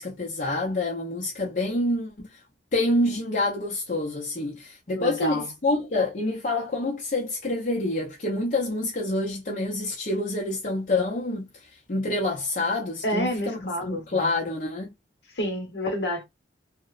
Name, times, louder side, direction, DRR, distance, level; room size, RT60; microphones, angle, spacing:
voice 1, 0.0-2.4 2.7-14.9, left 2 dB, 45° left, 0.5 m, -27 dB
voice 2, 4.9-5.5 13.0-14.3 15.3-16.2, equal, 65° left, 0.9 m, -29 dB
2.9 x 2.0 x 2.3 m
head